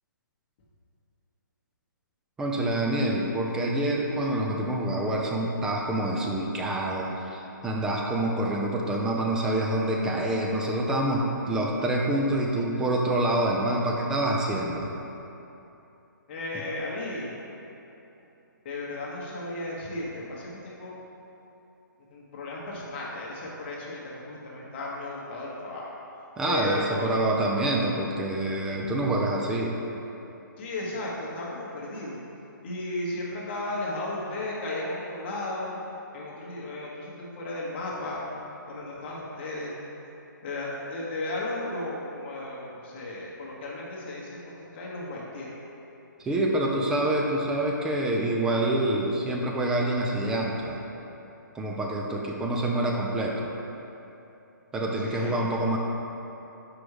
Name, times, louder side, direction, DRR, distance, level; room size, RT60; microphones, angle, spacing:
voice 1, 2.4-14.9 26.4-29.8 46.2-50.8 51.5-53.5 54.7-55.8, right 1 dB, 5° right, -1 dB, 0.4 m, -26 dB
voice 2, 16.3-17.3 18.6-21.0 22.1-25.9 26.4-27.2 28.7-28.9 30.6-32.2 32.6-35.8 36.1-38.2 38.7-39.8 40.4-45.5 55.0-55.5, left 2 dB, 35° left, -4 dB, 1.3 m, -35 dB
6.0 x 4.9 x 4.8 m, 3.0 s
hypercardioid pair, 160°, 11 cm